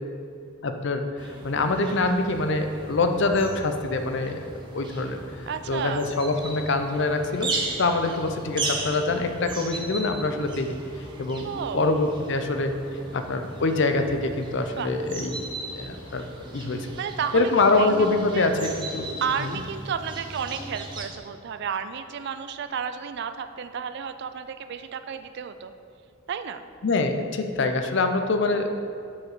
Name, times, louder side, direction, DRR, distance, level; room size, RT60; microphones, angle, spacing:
voice 1, 0.6-1.1 1.4-4.4 4.7-7.5 7.8-10.8 11.2-11.5 11.7-12.7 13.1-15.4 15.7-16.2 16.5-16.9 17.3-19.1 19.4-19.5 26.8-28.7, left 3 dB, 55° left, 6 dB, 0.5 m, -24 dB
sound 1, 1.2-21.1, right 2 dB, 20° right, 0.7 m, -37 dB
voice 2, 5.5-6.1 11.4-11.8 14.8-14.9 17.0-17.9 18.3-18.5 19.2-25.7 26.3-26.6, right 7 dB, 50° right, 10 dB, 0.3 m, -32 dB
7.3 x 4.8 x 4.6 m, 2.5 s
head